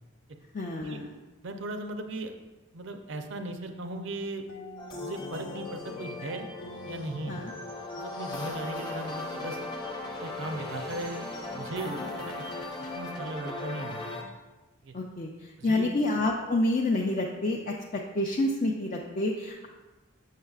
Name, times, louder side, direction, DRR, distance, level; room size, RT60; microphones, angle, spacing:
voice 1, 0.5-1.1 7.3-7.5 11.8-12.1 14.9-19.7, left 2 dB, 40° left, -1 dB, 0.4 m, -29 dB
voice 2, 1.4-2.3 2.7-4.4 5.0-6.5 6.8-7.4 7.9-9.6 10.1-11.2 11.5-12.5 12.8-14.1 14.8-14.9 15.6-15.9, right 2 dB, 55° right, 6 dB, 0.5 m, -37 dB
sound 1, 4.5-9.1, left 1 dB, 80° left, 0.7 m, -48 dB
sound 2, 4.8-14.2, left 2 dB, 20° left, 0.8 m, -38 dB
6.5 x 6.5 x 2.4 m, 1.2 s
head